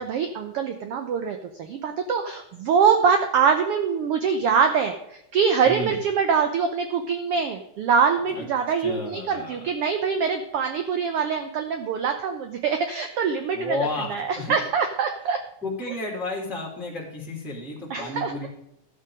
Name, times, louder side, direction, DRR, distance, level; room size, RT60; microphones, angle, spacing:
voice 1, 0.0-15.4 17.9-18.3, right 6 dB, 75° right, 6 dB, 1.3 m, -24 dB
voice 2, 5.6-6.0 8.3-8.4 8.8-9.6 13.5-14.5 15.6-18.5, left 2 dB, ahead, -2 dB, 2.5 m, -32 dB
12.5 x 7.5 x 4.9 m, 0.81 s
omnidirectional pair, 3.7 m